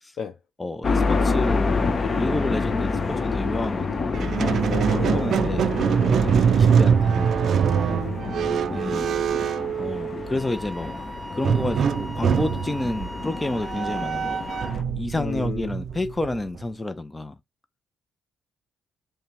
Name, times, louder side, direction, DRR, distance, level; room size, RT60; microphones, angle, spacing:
voice 1, 0.6-7.4 8.7-9.2 9.8-11.0 11.3-14.5 14.9-17.4, left 2 dB, 15° left, 0.5 m, -30 dB
sound 1, 0.8-14.8, left 4 dB, 40° left, 1.0 m, -28 dB
Squeak, 4.1-10.5 11.4-16.6, right 7 dB, 60° right, 0.4 m, -23 dB
voice 2, 4.7-6.0 7.9-8.7 15.2-15.7, left 6 dB, 60° left, 0.7 m, -34 dB
Wind instrument woodwind instrument, 10.4-14.8, right 1 dB, 10° right, 0.9 m, -39 dB
5.5 x 2.2 x 3.4 m
cardioid pair, 90°, 0 cm